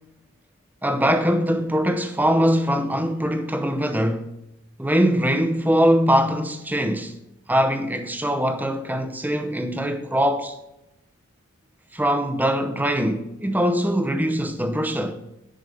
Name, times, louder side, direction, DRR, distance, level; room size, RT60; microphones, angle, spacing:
voice 1, 0.8-4.3 4.8-7.2 7.5-10.5 11.9-15.2, equal, 10° right, 0.7 m, -22 dB
10.5 x 5.0 x 6.9 m
head